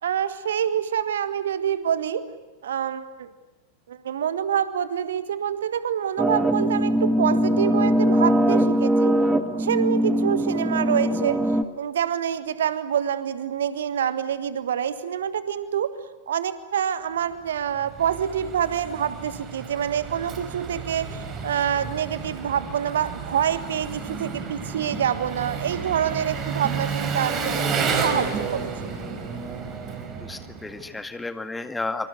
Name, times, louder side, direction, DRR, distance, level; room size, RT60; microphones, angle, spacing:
voice 1, 0.0-2.2 2.6-3.3 3.9-9.2 9.6-15.9 16.3-28.7, right 9 dB, 65° right, 12 dB, 1.5 m, -26 dB
sound 1, 6.2-11.6, equal, 10° right, 1.8 m, -21 dB
Engine, 17.5-31.0, right 5 dB, 30° right, 4.9 m, -31 dB
voice 2, 30.1-32.1, left 3 dB, 10° left, 8 dB, 2.0 m, -32 dB
26.0 x 25.5 x 8.3 m, 1.2 s
figure-of-eight pair, 90°, 0 cm